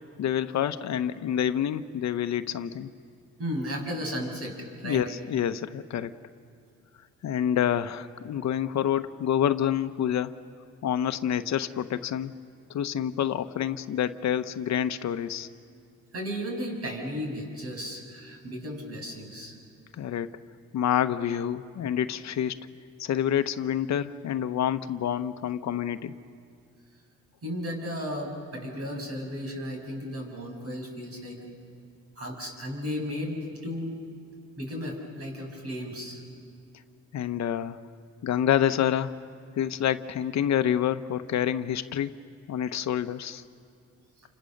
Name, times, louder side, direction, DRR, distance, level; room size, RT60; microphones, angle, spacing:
voice 1, 0.2-2.9 4.8-6.1 7.2-10.4 10.8-12.3 12.7-15.5 20.0-20.3 20.7-22.7 23.0-26.1 37.1-37.8 38.2-39.1 39.6-42.1 42.5-43.4, left 10 dB, 65° left, 10 dB, 0.9 m, -27 dB
voice 2, 3.4-5.0 16.1-19.6 27.4-31.5 32.2-34.0 34.6-36.2, equal, 50° right, 2 dB, 6.8 m, -34 dB
29.0 x 26.0 x 6.6 m, 2.3 s
cardioid pair, 90°, 30 cm